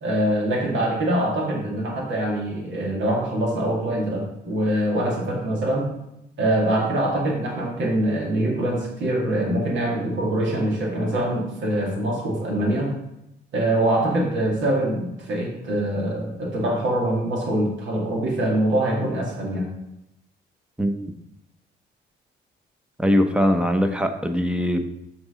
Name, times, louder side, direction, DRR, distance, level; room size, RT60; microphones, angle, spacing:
voice 1, 0.0-5.9 6.4-12.9 13.5-19.7, right 1 dB, 70° right, -1 dB, 2.2 m, -24 dB
voice 2, 20.8-21.1 23.0-24.8, equal, 5° right, 7 dB, 0.8 m, -21 dB
6.1 x 4.0 x 5.1 m, 0.84 s
cardioid pair, 90°, 20 cm